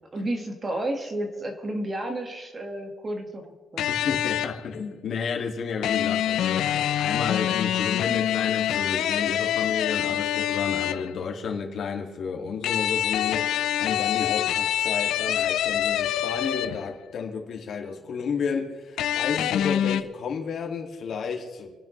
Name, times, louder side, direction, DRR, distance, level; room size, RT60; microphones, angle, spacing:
voice 1, 0.1-3.9, right 1 dB, 25° right, 4 dB, 1.8 m, -31 dB
sound 1, 3.8-4.7 5.8-11.2 12.6-17.0 19.0-20.0, left 11 dB, 70° left, 0.6 m, -26 dB
voice 2, 4.0-21.7, left 6 dB, 50° left, 2 dB, 2.3 m, -31 dB
29.0 x 10.5 x 3.3 m, 1.4 s
cardioid pair, 140°, 0 cm